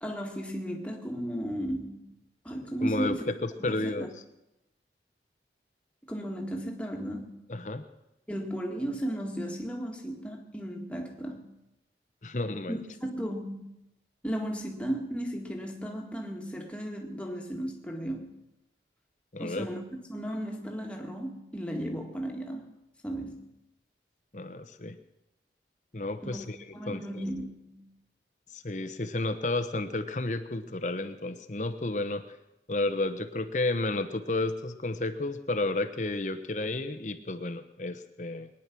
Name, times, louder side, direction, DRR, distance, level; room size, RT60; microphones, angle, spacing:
voice 1, 0.0-2.1 2.4-3.3 3.6-4.1 6.1-7.4 8.3-11.5 12.7-13.8 14.2-18.4 19.4-19.8 20.1-22.8 23.0-23.5 26.2-26.4 26.7-27.9, equal, 5° left, 1 dB, 1.9 m, -35 dB
voice 2, 2.8-3.2 3.6-4.1 7.5-7.8 12.2-12.8 19.3-19.7 24.3-25.0 25.9-26.6 26.9-27.2 28.5-32.2 32.7-38.5, left 2 dB, 45° left, 9 dB, 1.0 m, -31 dB
22.0 x 10.0 x 6.1 m, 0.91 s
head